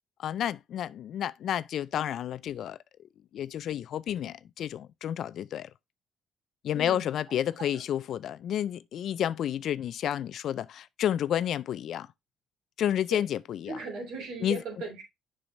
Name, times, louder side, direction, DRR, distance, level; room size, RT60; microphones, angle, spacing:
voice 1, 0.2-2.8 3.3-5.7 6.6-12.1 12.8-13.8 14.4-14.6, left 10 dB, 65° left, 0.4 m, -30 dB
voice 2, 6.7-7.1 7.6-7.8 13.1-13.2 13.7-15.0, right 4 dB, 80° right, 3.1 m, -38 dB
7.0 x 5.5 x 3.2 m
cardioid pair, 85°, 0 cm